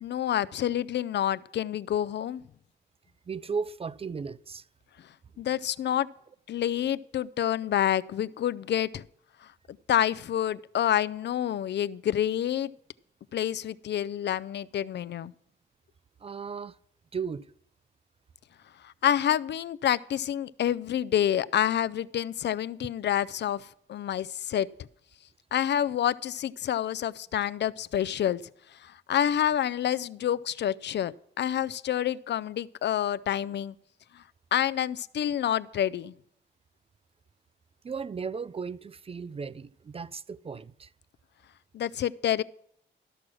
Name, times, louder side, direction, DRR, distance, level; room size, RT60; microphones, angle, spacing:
voice 1, 0.0-2.4 5.4-6.1 6.5-9.0 9.4-9.5 9.9-12.7 13.3-15.3 18.8-24.7 25.5-28.4 28.8-33.7 34.1-34.2 34.5-36.1 41.7-42.4, left 10 dB, 65° left, 0.4 m, -28 dB
voice 2, 3.3-4.7 5.5-5.6 16.2-16.8 17.1-17.5 37.8-40.9, right 5 dB, 30° right, 0.3 m, -36 dB
13.0 x 6.1 x 6.2 m
cardioid pair, 80°, 20 cm